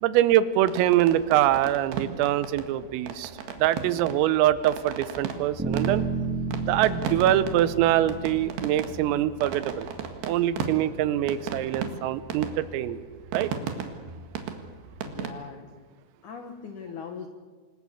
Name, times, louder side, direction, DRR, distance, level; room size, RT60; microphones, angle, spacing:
voice 1, 0.0-3.3 3.6-6.0 6.6-9.9 10.2-13.0 13.3-13.5, right 12 dB, 85° right, 14 dB, 3.6 m, -24 dB
sound 1, 0.6-15.3, right 7 dB, 65° right, 3.5 m, -37 dB
sound 2, 5.6-9.6, right 3 dB, 5° right, 3.4 m, -32 dB
voice 2, 15.0-15.7 16.2-17.3, left 6 dB, 85° left, 6 dB, 1.7 m, -40 dB
27.5 x 20.5 x 7.3 m, 1.5 s
omnidirectional pair, 5.9 m